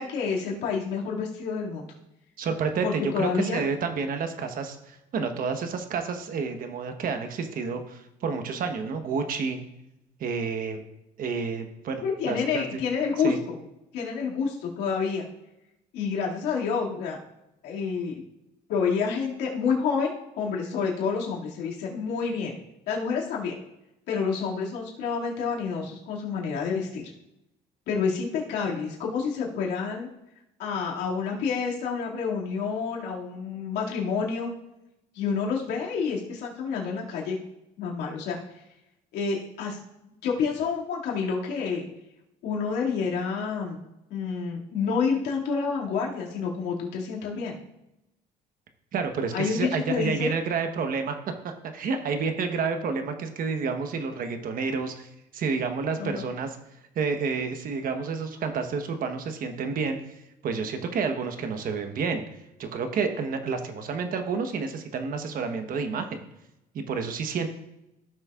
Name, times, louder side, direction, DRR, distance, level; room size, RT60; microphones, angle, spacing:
voice 1, 0.0-1.9 2.8-3.6 12.0-13.6 13.9-15.2 15.9-17.2 17.6-18.2 18.7-22.5 22.9-23.6 24.1-27.1 27.9-30.1 30.6-34.5 35.1-37.4 37.8-38.6 39.1-39.8 40.2-41.9 42.4-43.8 44.1-47.6 49.3-50.3 56.0-56.2, left 5 dB, 85° left, -3 dB, 2.3 m, -28 dB
voice 2, 2.4-9.6 10.2-10.8 11.2-12.7 13.2-13.4 48.9-51.2 51.4-56.6 56.9-60.2 60.4-62.2 62.6-66.3 66.7-67.5, right 5 dB, 55° right, 7 dB, 1.2 m, -29 dB
15.0 x 6.4 x 2.4 m, 0.89 s
cardioid pair, 110°, 17 cm